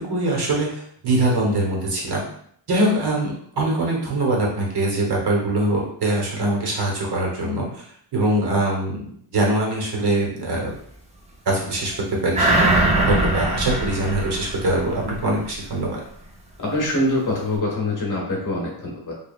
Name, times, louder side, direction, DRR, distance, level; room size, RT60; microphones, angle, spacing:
voice 1, 0.1-2.2 2.7-10.7 11.4-16.0, right 1 dB, 55° right, -2 dB, 1.2 m, -23 dB
sound 1, 12.3-15.3 15.6-15.7, right 2 dB, 15° right, 0.5 m, -21 dB
voice 2, 16.6-19.1, left 1 dB, 40° left, -2 dB, 1.2 m, -24 dB
5.1 x 2.6 x 2.4 m, 0.65 s
wide cardioid pair, 180°, 47 cm